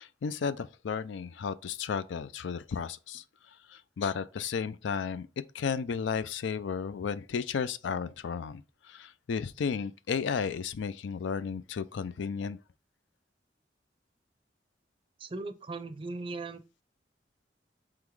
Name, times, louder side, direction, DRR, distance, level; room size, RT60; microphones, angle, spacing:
voice 1, 0.0-3.2 3.7-5.3 5.5-12.6, left 6 dB, 90° left, 0.4 m, -33 dB
voice 2, 15.2-16.6, right 3 dB, 30° right, 0.4 m, -38 dB
3.8 x 3.0 x 4.7 m
head